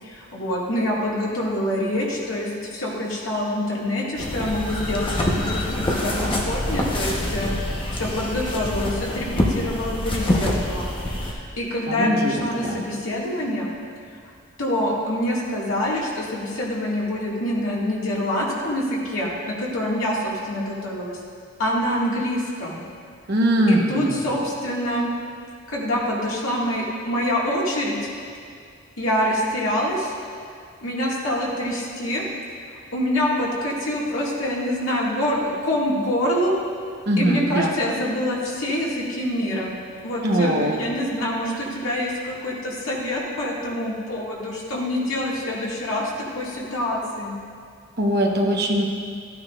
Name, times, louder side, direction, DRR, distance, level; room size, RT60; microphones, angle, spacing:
voice 1, 0.0-13.7 14.6-21.2 21.6-22.8 23.7-25.1 25.7-28.1 29.0-30.1 30.8-32.3 32.9-36.5 37.2-39.7 40.0-46.0 46.3-47.3, left 1 dB, 85° left, -4 dB, 2.0 m, -26 dB
sound 1, 4.2-11.3, left 1 dB, 25° left, 0.9 m, -25 dB
voice 2, 11.8-12.8 23.3-24.2 37.1-37.7 40.2-40.8 48.0-48.9, right 1 dB, 50° right, 1 dB, 1.0 m, -21 dB
13.5 x 9.3 x 2.4 m, 2.2 s
head